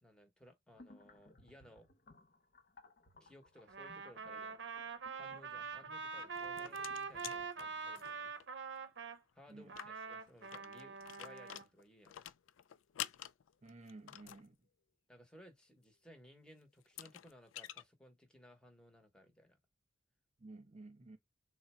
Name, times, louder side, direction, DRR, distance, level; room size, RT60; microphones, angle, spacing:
voice 1, 0.0-1.9 3.2-4.6 5.1-8.3 9.3-9.7 10.1-12.2 15.1-19.6, equal, 5° left, 0.9 m, -60 dB
sound 1, 0.7-7.9, left 2 dB, 50° left, 0.7 m, -63 dB
Trumpet, 3.7-9.2 9.7-11.6, right 5 dB, 65° right, 0.6 m, -44 dB
sound 2, 6.1-8.4 8.8-8.9 9.1-9.2 9.6-14.5 16.2-16.3 16.8-17.8, left 12 dB, 90° left, 0.4 m, -48 dB
voice 2, 9.5-9.8 13.6-14.7 20.4-21.2, right 2 dB, 35° right, 0.8 m, -54 dB
3.8 x 2.1 x 4.2 m
head